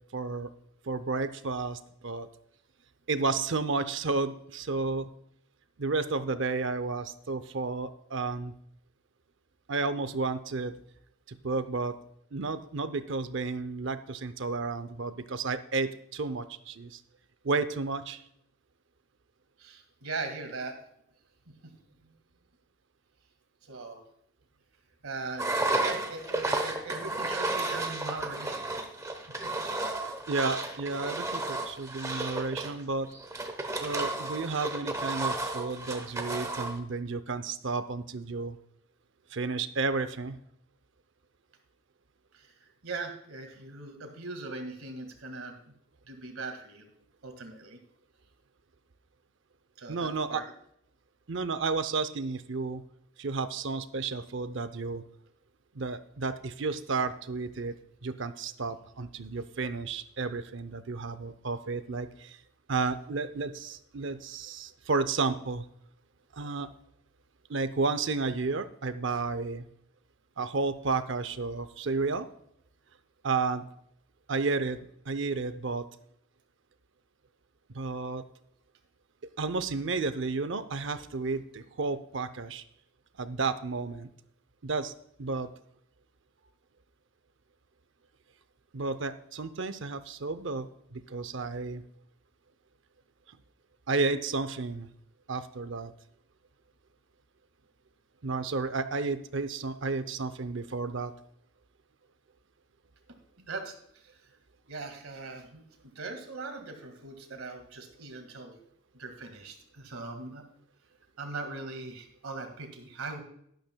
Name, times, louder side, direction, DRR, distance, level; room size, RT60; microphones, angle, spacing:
voice 1, 0.1-0.5 0.8-2.3 3.1-5.1 5.8-8.5 9.7-10.7 11.3-11.9 12.3-17.0 17.4-18.2 30.3-33.1 33.8-38.6 39.3-40.4 49.9-50.4 51.3-52.8 53.2-55.0 55.7-57.7 58.0-62.4 62.7-65.7 66.3-66.7 67.5-69.7 70.4-72.3 73.2-73.6 74.3-75.8 77.7-78.2 79.4-82.6 83.2-84.1 84.6-84.9 85.2-85.5 88.7-91.8 93.9-94.9 95.3-95.9 98.2-101.1, right 4 dB, 60° right, 12 dB, 0.6 m, -32 dB
voice 2, 19.6-20.8 21.5-21.7 22.0-22.1 23.7-24.0 25.0-25.5 25.8-28.7 29.3-29.5 42.3-45.7 46.1-46.9 47.2-47.8 49.8-50.5 103.4-104.1 104.7-108.6 108.9-110.5 111.2-113.2, right 3 dB, 85° right, 5 dB, 1.9 m, -40 dB
Engine, 25.4-36.8, right 2 dB, 15° right, 0.9 m, -33 dB
12.0 x 11.5 x 2.2 m, 0.71 s
head